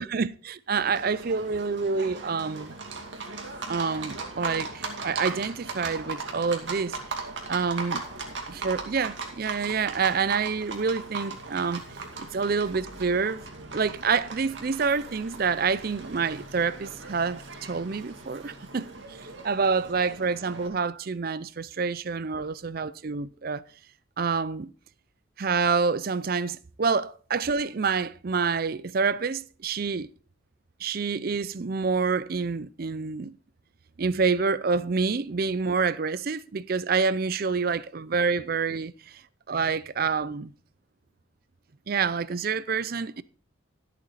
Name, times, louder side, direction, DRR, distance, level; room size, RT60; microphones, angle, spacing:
voice 1, 0.0-2.8 3.7-7.0 7.5-8.0 8.5-11.8 12.3-13.4 13.7-19.2 19.4-23.6 24.2-24.7 25.4-30.1 30.8-33.3 34.0-39.2 39.5-40.5 41.9-43.2, right 5 dB, 45° right, 0.5 m, -27 dB
Livestock farm animals working animals, 0.7-20.7, right 3 dB, 60° right, 2.5 m, -38 dB
13.5 x 8.4 x 4.1 m
head